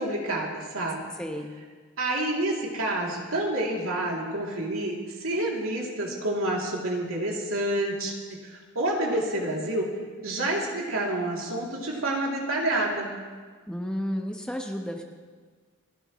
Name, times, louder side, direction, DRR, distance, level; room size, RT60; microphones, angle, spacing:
voice 1, 0.0-1.1 2.0-8.1 8.4-9.8 10.2-13.1, right 1 dB, 80° right, -2 dB, 2.9 m, -28 dB
voice 2, 1.2-1.5 13.7-15.0, equal, 5° left, 2 dB, 1.0 m, -32 dB
30.0 x 11.5 x 3.1 m, 1.5 s
head